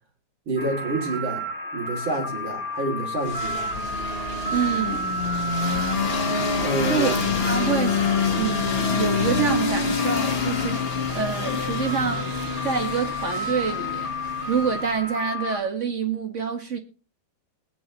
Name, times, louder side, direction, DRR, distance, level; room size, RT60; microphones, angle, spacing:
voice 1, 0.5-1.5 1.7-3.7 5.6-5.7 6.6-7.2, right 2 dB, 85° right, 3.8 m, -28 dB
sound 1, 0.6-15.6, equal, 10° right, 1.5 m, -32 dB
sound 2, 3.2-15.0, left 5 dB, 35° left, 1.4 m, -27 dB
sound 3, 3.8-12.8, right 1 dB, 65° right, 3.0 m, -45 dB
voice 2, 4.5-5.1 6.6-8.0 8.3-10.9 11.1-12.3 12.6-14.1 14.5-16.8, right 6 dB, 40° right, 1.8 m, -27 dB
21.5 x 9.6 x 3.0 m
omnidirectional pair, 2.1 m